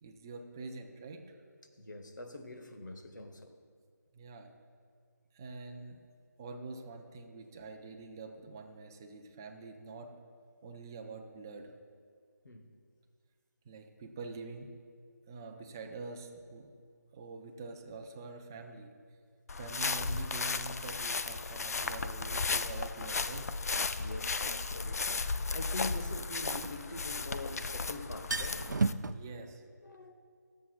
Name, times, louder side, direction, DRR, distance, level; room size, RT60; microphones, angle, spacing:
voice 1, 0.0-1.2 4.1-4.5 5.3-6.0 6.4-10.1 10.6-11.7 13.7-14.7 15.3-16.7 17.1-18.9 19.6-23.4 29.1-29.6, right 3 dB, 10° right, 0.4 m, -45 dB
voice 2, 1.7-3.6 12.4-12.7 24.0-28.8 29.2-29.5 29.8-30.1, left 2 dB, 85° left, 1.1 m, -44 dB
sound 1, 19.5-28.9, left 4 dB, 55° left, 0.4 m, -35 dB
sound 2, 23.7-23.8 26.2-27.5 27.8-27.9 28.1-29.1, right 4 dB, 80° right, 0.4 m, -34 dB
17.0 x 7.1 x 2.4 m
figure-of-eight pair, 165°, 10 cm